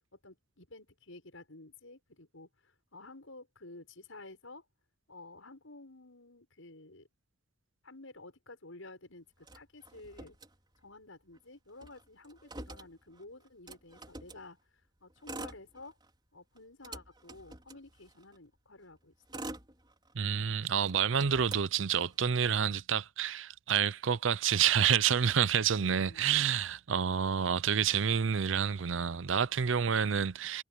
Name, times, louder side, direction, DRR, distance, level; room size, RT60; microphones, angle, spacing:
voice 1, 0.1-4.6 5.1-7.1 7.8-10.4 10.8-16.0 16.3-19.5 25.7-26.3, left 2 dB, 85° left, 6.4 m, -52 dB
Motor vehicle (road), 9.4-11.0 11.3-11.4 11.7-14.5 15.1-16.2 16.6-18.4 19.0-20.4 20.8-22.4, right 2 dB, 20° right, 4.9 m, -47 dB
voice 2, 20.1-30.6, right 7 dB, 75° right, 0.6 m, -28 dB
head